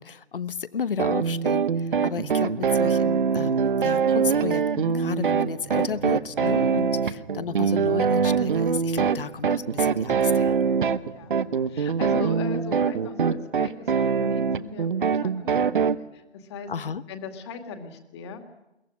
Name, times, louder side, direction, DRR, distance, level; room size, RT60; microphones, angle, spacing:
voice 1, 0.0-10.6 16.7-17.0, left 6 dB, 55° left, 16 dB, 1.1 m, -33 dB
sound 1, 1.0-15.9, right 6 dB, 50° right, 1.0 m, -23 dB
sound 2, 5.6-12.2, right 4 dB, 20° right, 1.6 m, -47 dB
voice 2, 11.1-11.4 11.6-16.7 17.1-18.4, left 5 dB, 25° left, 7 dB, 2.2 m, -39 dB
22.5 x 18.0 x 9.9 m, 0.92 s
figure-of-eight pair, 150°, 33 cm